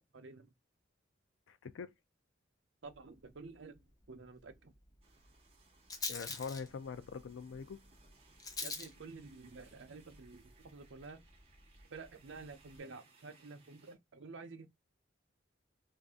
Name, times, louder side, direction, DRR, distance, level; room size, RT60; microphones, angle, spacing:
voice 1, 0.1-0.5 2.8-4.7 8.6-11.2 11.9-14.7, right 4 dB, 70° right, 0.6 m, -51 dB
voice 2, 1.5-1.9 6.1-7.8, left 5 dB, 75° left, 0.4 m, -43 dB
Rattle, 2.9-12.8, left 3 dB, 20° left, 0.5 m, -48 dB
sound 1, 5.0-14.0, right 4 dB, 30° right, 0.9 m, -67 dB
2.6 x 2.4 x 3.5 m
head